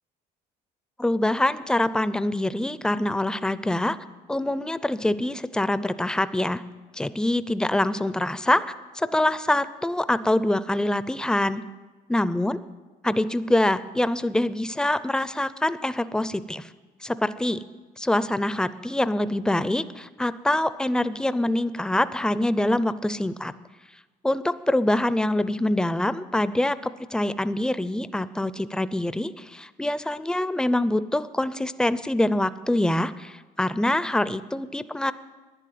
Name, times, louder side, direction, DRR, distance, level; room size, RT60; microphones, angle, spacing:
voice 1, 1.0-4.0 4.3-6.6 6.9-8.6 8.9-11.6 12.1-12.6 13.0-16.7 17.0-17.6 18.0-23.5 24.2-35.1, left 1 dB, 5° left, 14 dB, 0.5 m, -25 dB
11.5 x 10.5 x 9.3 m, 1.3 s
cardioid pair, 110°, 17 cm